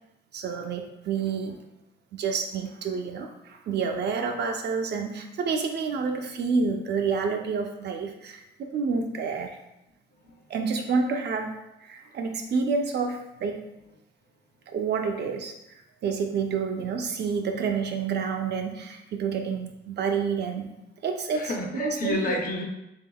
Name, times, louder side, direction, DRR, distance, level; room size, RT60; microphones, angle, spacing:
voice 1, 0.3-1.6 2.1-9.6 10.5-13.6 14.7-15.5 16.0-20.7 21.0-21.5 21.8-22.4, right 5 dB, 60° right, 3 dB, 0.5 m, -29 dB
voice 2, 10.1-10.4 21.3-22.7, left 2 dB, 45° left, 2 dB, 0.6 m, -30 dB
3.6 x 3.5 x 2.2 m, 0.89 s
cardioid pair, 90°, 20 cm